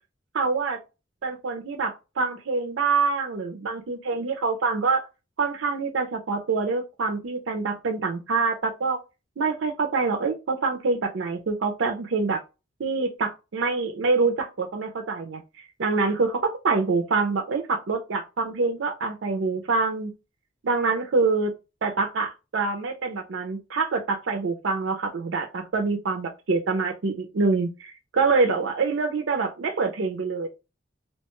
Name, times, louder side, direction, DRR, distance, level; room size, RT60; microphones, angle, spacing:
voice 1, 0.3-0.8 1.2-5.1 5.4-9.0 9.4-12.4 12.8-15.4 15.8-20.1 20.6-21.5 21.8-30.5, right 4 dB, 85° right, 3 dB, 0.5 m, -25 dB
2.9 x 2.2 x 2.9 m, 0.27 s
head